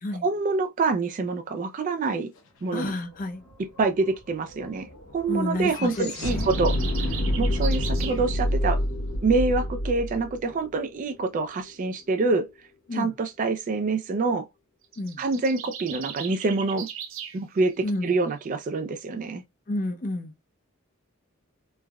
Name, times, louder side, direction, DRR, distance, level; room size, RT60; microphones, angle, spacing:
voice 1, 0.2-2.3 2.6-2.9 3.8-6.7 7.0-8.8 9.2-12.5 12.9-14.4 15.2-16.9 17.3-19.4, right 3 dB, 40° right, 0.3 m, -26 dB
voice 2, 2.7-3.4 5.3-6.5 12.9-13.1 15.0-15.2 17.8-18.1 19.7-20.3, left 2 dB, 40° left, 0.5 m, -30 dB
sound 1, 2.8-2.9 3.2-11.4, left 1 dB, 80° left, 0.8 m, -28 dB
sound 2, 5.9-8.2 14.8-17.4, right 9 dB, 70° right, 0.7 m, -38 dB
3.3 x 2.1 x 2.3 m
head